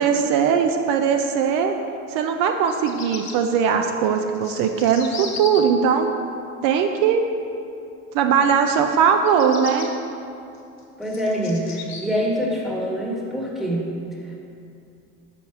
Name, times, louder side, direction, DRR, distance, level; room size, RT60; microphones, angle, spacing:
voice 1, 0.0-1.7 2.1-6.1 6.6-7.2 8.1-9.9, right 7 dB, 65° right, 5 dB, 0.5 m, -20 dB
Bird vocalization bird call bird song, 2.5-3.3 4.1-5.6 9.1-9.9 10.5-12.0, left 6 dB, 50° left, 1.1 m, -36 dB
voice 2, 11.0-13.9, equal, ahead, -3 dB, 1.3 m, -25 dB
6.0 x 3.9 x 4.5 m, 2.6 s
hypercardioid pair, 75°, 36 cm